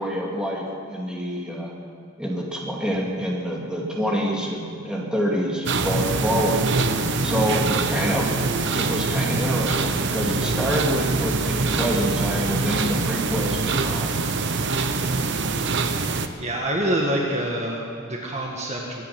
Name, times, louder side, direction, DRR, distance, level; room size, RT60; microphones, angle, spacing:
voice 1, 0.0-1.7 2.2-6.7 7.2-14.1, equal, 5° right, -3 dB, 2.5 m, -26 dB
sound 1, 5.7-16.3, right 3 dB, 60° right, 0.9 m, -24 dB
voice 2, 16.4-19.0, right 1 dB, 35° right, -1 dB, 1.7 m, -26 dB
24.0 x 9.9 x 6.1 m, 2.5 s
head